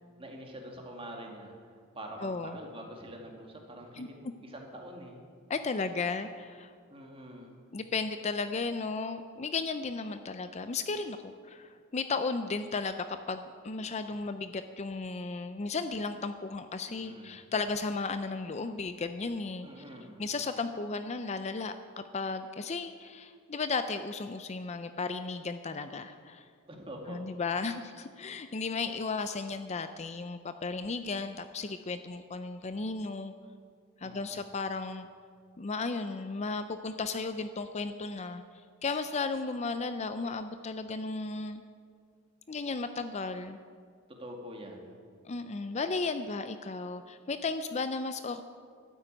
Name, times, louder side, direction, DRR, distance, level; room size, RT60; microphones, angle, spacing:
voice 1, 0.2-4.1 4.4-5.2 6.9-7.6 16.9-17.4 19.6-20.2 26.7-27.2 34.0-34.4 44.2-44.9, equal, 25° right, 1 dB, 2.2 m, -45 dB
voice 2, 2.2-2.6 3.9-4.1 5.5-6.7 7.7-19.8 20.2-21.7 22.1-26.4 27.1-33.3 34.0-35.1 35.6-38.4 38.8-41.6 42.5-43.6 45.2-48.4, left 4 dB, 30° left, 10 dB, 0.5 m, -34 dB
12.5 x 9.2 x 8.9 m, 2.1 s
head